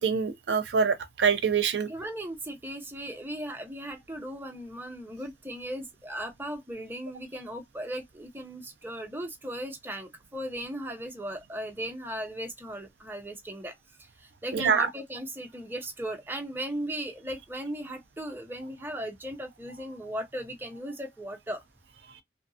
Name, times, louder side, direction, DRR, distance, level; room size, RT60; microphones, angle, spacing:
voice 1, 0.0-1.9 14.5-14.9, right 6 dB, 80° right, 0.5 m, -25 dB
voice 2, 1.9-13.8 14.2-21.6, right 1 dB, 10° right, 0.6 m, -37 dB
2.7 x 2.5 x 2.7 m
head